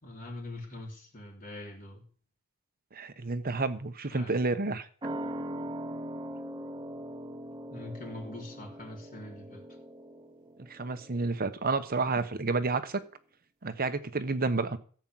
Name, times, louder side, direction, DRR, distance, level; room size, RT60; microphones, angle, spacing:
voice 1, 0.0-2.0 4.1-4.4 7.7-9.6, left 1 dB, 40° left, 0 dB, 3.5 m, -43 dB
voice 2, 2.9-4.9 10.6-13.0 13.6-14.8, right 3 dB, 45° right, 10 dB, 1.0 m, -30 dB
sound 1, 5.0-12.1 12.4-12.5, right 1 dB, 20° right, 0.8 m, -41 dB
15.0 x 5.3 x 7.7 m, 0.44 s
head